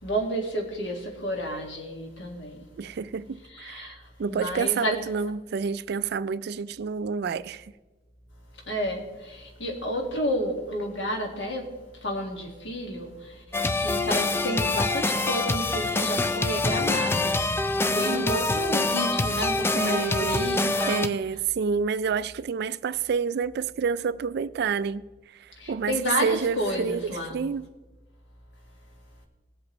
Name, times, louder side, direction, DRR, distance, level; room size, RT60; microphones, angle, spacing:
voice 1, 0.0-2.6 3.5-5.0 8.7-11.7 12.0-13.4 13.7-17.4 17.8-21.1 25.6-27.4, equal, 70° left, 2.0 m, -31 dB
voice 2, 2.8-3.9 4.2-7.7 17.9-18.3 19.7-25.0 25.3-27.7, right 6 dB, 60° right, 0.3 m, -29 dB
sound 1, 13.5-21.1, left 2 dB, 15° left, 0.3 m, -25 dB
19.0 x 7.8 x 3.1 m
head